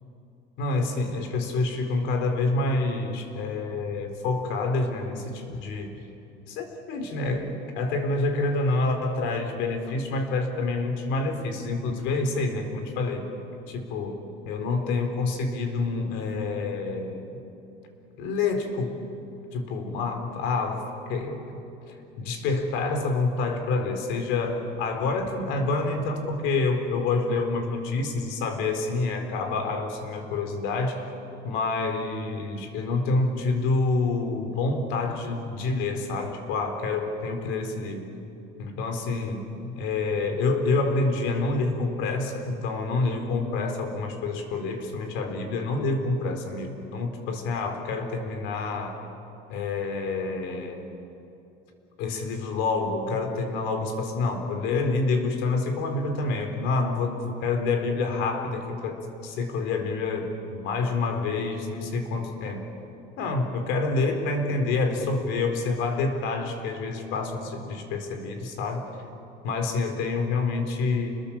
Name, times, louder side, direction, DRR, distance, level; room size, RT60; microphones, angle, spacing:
voice 1, 0.6-5.9 6.5-13.3 13.7-14.2 14.5-17.3 18.2-18.9 19.5-21.6 21.9-31.0 31.4-38.1 38.6-49.0 49.5-50.8 52.0-62.7 63.2-68.9 69.4-71.2, left 3 dB, 70° left, 5 dB, 4.3 m, -27 dB
30.0 x 21.5 x 7.4 m, 2.8 s
cardioid pair, 155°, 20 cm